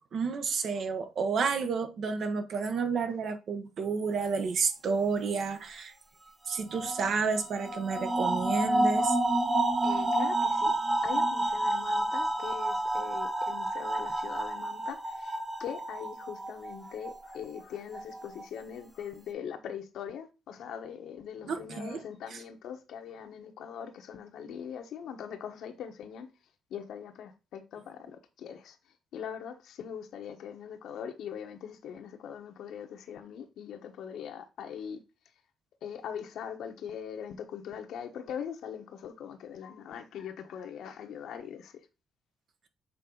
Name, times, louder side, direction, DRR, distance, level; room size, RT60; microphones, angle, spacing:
voice 1, 0.1-5.9 6.5-9.2 21.5-22.0, right 5 dB, 60° right, 1.0 m, -30 dB
sound 1, 6.5-17.4 17.9-18.4, right 1 dB, 15° right, 0.9 m, -29 dB
voice 2, 9.8-10.7 11.0-26.3 26.7-28.8 29.1-35.0 35.8-41.8, left 8 dB, 75° left, 1.1 m, -41 dB
7.5 x 3.9 x 3.9 m
cardioid pair, 90°, 0 cm